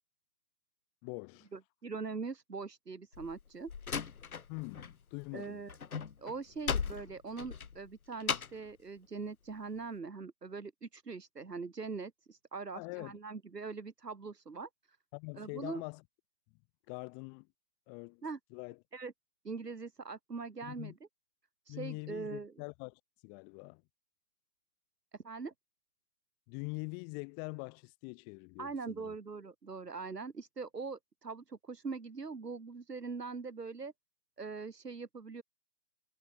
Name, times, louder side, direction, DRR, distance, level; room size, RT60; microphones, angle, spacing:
voice 1, 1.0-1.5 4.5-5.6 12.7-13.2 15.1-16.0 16.9-17.5 17.9-18.2 18.5-18.8 20.6-20.9 21.7-23.8 26.5-29.1, left 40 dB or more, 20° left, 4.3 m, -44 dB
voice 2, 1.5-3.7 5.3-5.8 6.2-15.0 15.4-15.8 18.2-18.4 18.9-19.1 19.4-20.9 21.7-22.5 25.2-25.5 28.6-33.9 34.4-35.4, right 4 dB, 70° right, 4.5 m, -42 dB
Slam, 3.1-4.9 5.2-8.7, left 6 dB, 55° left, 2.5 m, -38 dB
figure-of-eight pair, 140°, 50 cm